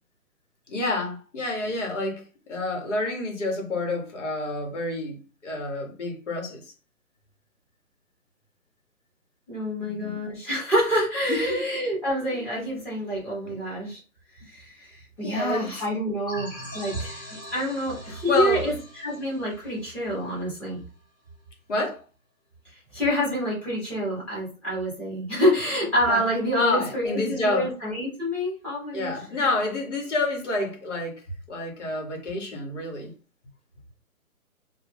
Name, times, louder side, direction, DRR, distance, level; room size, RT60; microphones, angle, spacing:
voice 1, 0.7-6.7 9.8-10.2 11.3-11.6 12.3-12.4 13.4-13.5 15.2-15.7 18.1-18.7 21.7-22.0 26.1-26.2 26.6-27.7 28.9-33.1, left 2 dB, 55° left, 1.2 m, -28 dB
voice 2, 9.5-14.0 14.5-20.8 22.6-29.5, equal, 5° left, 0.9 m, -27 dB
sound 1, 16.3-20.7, left 1 dB, 15° right, 0.4 m, -42 dB
2.4 x 2.2 x 3.4 m
figure-of-eight pair, 135°, 43 cm